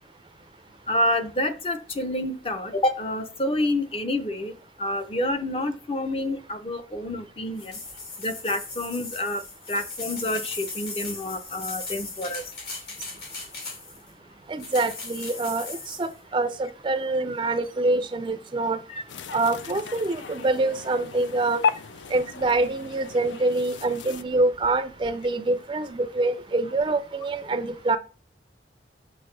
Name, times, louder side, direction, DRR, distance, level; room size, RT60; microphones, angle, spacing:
voice 1, 0.9-4.5 4.8-7.7 8.2-9.4 9.7-12.4 18.9-19.0, left 1 dB, 30° left, 0.6 m, -28 dB
sound 1, 7.6-14.1 14.6-16.1, left 3 dB, 60° left, 2.7 m, -37 dB
voice 2, 14.5-18.8 19.3-21.6 22.1-28.0, right 2 dB, 25° right, 0.4 m, -25 dB
sound 2, 19.1-24.2, left 6 dB, 90° left, 0.4 m, -34 dB
6.1 x 5.5 x 3.2 m
head